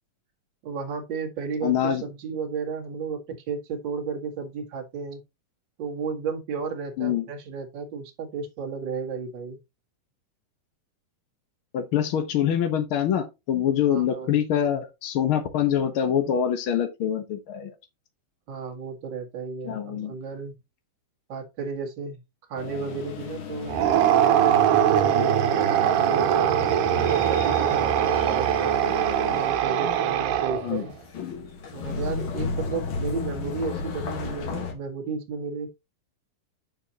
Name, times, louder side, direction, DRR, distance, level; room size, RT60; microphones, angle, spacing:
voice 1, 0.6-5.2 5.8-9.6 13.9-14.4 18.5-20.5 21.3-22.2 22.5-23.8 24.1-26.3 26.9-28.9 29.3-30.9 31.7-35.8, right 5 dB, 40° right, 2.1 m, -33 dB
voice 2, 1.6-2.0 7.0-7.3 11.7-17.7 19.6-20.1 25.2-25.3 30.6-30.8, left 9 dB, 80° left, 1.1 m, -25 dB
sound 1, 22.6-34.7, left 5 dB, 50° left, 1.8 m, -35 dB
sound 2, 23.7-30.8, right 10 dB, 75° right, 2.3 m, -22 dB
8.8 x 6.8 x 2.8 m
omnidirectional pair, 3.8 m